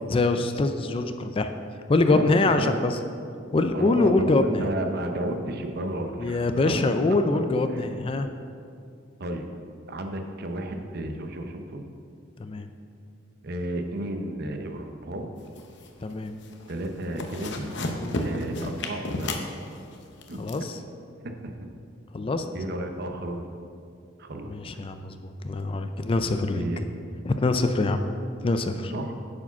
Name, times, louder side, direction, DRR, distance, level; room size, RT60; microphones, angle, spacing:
voice 1, 0.1-1.5 1.9-3.0 3.5-4.6 6.2-8.3 12.4-12.7 16.0-16.3 18.0-18.2 20.4-20.8 22.1-22.5 24.5-25.2 25.4-26.6 27.2-28.0 28.4-28.9, left 2 dB, 30° left, 8 dB, 0.4 m, -24 dB
voice 2, 2.1-2.8 3.7-6.5 7.7-7.8 9.2-9.5 9.9-11.9 13.4-15.3 16.7-17.7 18.2-19.4 20.3-20.5 21.2-21.6 22.5-23.4 24.2-24.5 26.5-26.9 28.9-29.1, right 1 dB, 55° right, 5 dB, 0.8 m, -32 dB
sound 1, 15.5-16.1 16.4-16.7 17.0-20.6, left 1 dB, 60° left, 0.8 m, -32 dB
9.6 x 4.9 x 5.8 m, 2.4 s
head